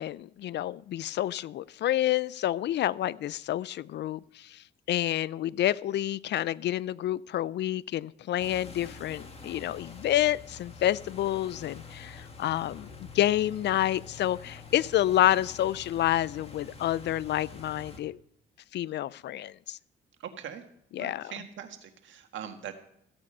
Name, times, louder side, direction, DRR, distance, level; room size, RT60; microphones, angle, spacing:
voice 1, 0.0-18.2 18.7-19.8 20.9-21.3, left 13 dB, 60° left, 21 dB, 0.4 m, -29 dB
sound 1, 8.4-18.0, left 4 dB, 30° left, 2.0 m, -47 dB
voice 2, 20.2-20.6 21.0-22.7, right 9 dB, 70° right, 7 dB, 1.7 m, -41 dB
15.0 x 8.6 x 5.4 m, 0.75 s
cardioid pair, 90°, 20 cm